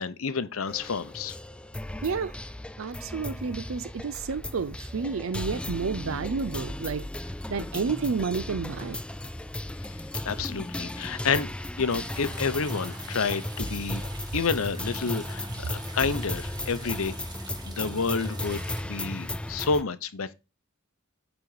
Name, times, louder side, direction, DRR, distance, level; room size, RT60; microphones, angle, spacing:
voice 1, 0.0-1.3 10.2-11.5 11.8-14.0 14.3-17.2 17.7-20.3, left 5 dB, 85° left, 0.8 m, -29 dB
sound 1, 0.7-19.8, left 1 dB, 5° left, 0.3 m, -35 dB
voice 2, 2.0-2.3 2.8-7.0 7.5-9.0, right 5 dB, 70° right, 0.5 m, -30 dB
sound 2, 11.9-18.8, right 3 dB, 20° right, 1.4 m, -46 dB
8.8 x 4.0 x 4.8 m
head